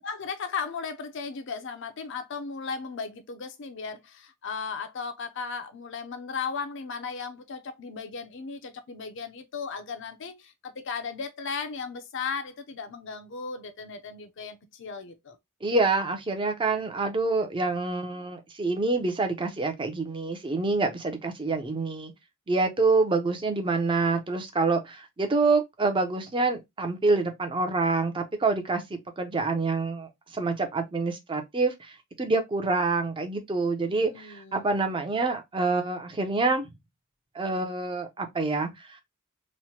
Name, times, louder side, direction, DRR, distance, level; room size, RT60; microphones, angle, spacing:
voice 1, 0.0-15.4 33.9-34.7, left 5 dB, 60° left, 0.5 m, -36 dB
voice 2, 15.6-22.1 22.5-36.7 37.3-38.7, right 3 dB, 25° right, 0.5 m, -27 dB
3.0 x 2.1 x 2.8 m
head